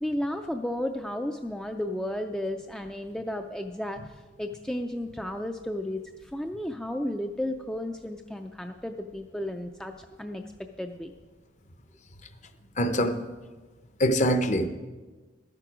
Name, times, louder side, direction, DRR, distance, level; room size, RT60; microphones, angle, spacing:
voice 1, 0.0-10.4 10.8-11.1, left 1 dB, 5° left, 5 dB, 0.3 m, -33 dB
voice 2, 12.8-13.2 14.0-14.7, equal, 40° left, 9 dB, 0.7 m, -23 dB
12.0 x 9.1 x 5.0 m, 1.3 s
head